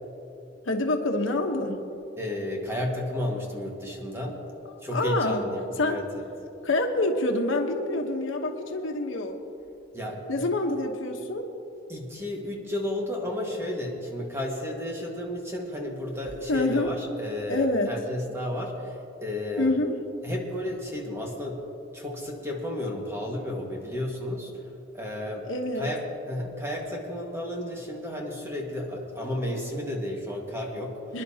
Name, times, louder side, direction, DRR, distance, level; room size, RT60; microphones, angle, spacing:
voice 1, 0.6-1.8 4.6-5.5 5.8-6.0 6.6-9.4 10.3-11.5 16.5-16.9 17.5-17.9 19.6-20.0 25.4-25.9 31.1-31.2, left 2 dB, 80° left, 3 dB, 1.2 m, -26 dB
voice 2, 2.2-4.4 4.8-6.3 9.9-10.4 11.9-19.7 20.2-21.6 21.9-24.5 24.9-25.5 25.8-26.0 26.3-31.0, left 1 dB, 15° right, -1 dB, 1.7 m, -32 dB
25.0 x 11.0 x 2.9 m, 2.8 s
head